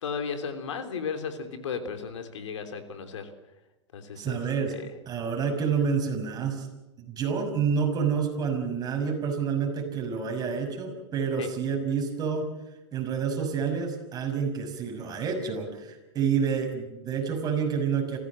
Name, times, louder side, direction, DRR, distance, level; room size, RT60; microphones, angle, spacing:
voice 1, 0.0-3.3 3.9-4.4 4.7-4.9 11.4-11.5, left 6 dB, 85° left, 7 dB, 3.4 m, -35 dB
voice 2, 4.2-4.8 5.1-6.7 7.1-12.5 12.9-18.2, right 6 dB, 25° right, 3 dB, 6.2 m, -28 dB
27.5 x 16.0 x 7.6 m, 1.0 s
hypercardioid pair, 125°, 15 cm